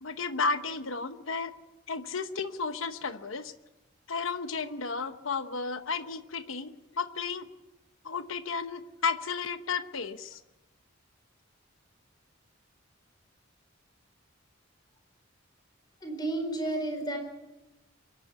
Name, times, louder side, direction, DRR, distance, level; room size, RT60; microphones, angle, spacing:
voice 1, 0.0-1.5 1.9-3.5 4.1-7.5 8.0-10.4, left 4 dB, 80° left, 10 dB, 1.0 m, -33 dB
voice 2, 16.0-17.2, right 2 dB, 20° left, 4 dB, 4.6 m, -31 dB
24.5 x 11.5 x 9.7 m, 1.0 s
head